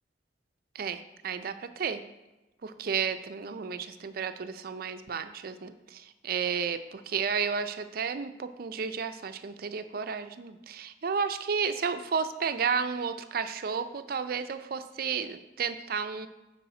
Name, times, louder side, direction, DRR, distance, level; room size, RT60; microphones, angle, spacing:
voice 1, 0.7-2.0 2.6-16.3, right 6 dB, 55° right, 10 dB, 0.4 m, -32 dB
8.3 x 4.7 x 4.2 m, 1.1 s
head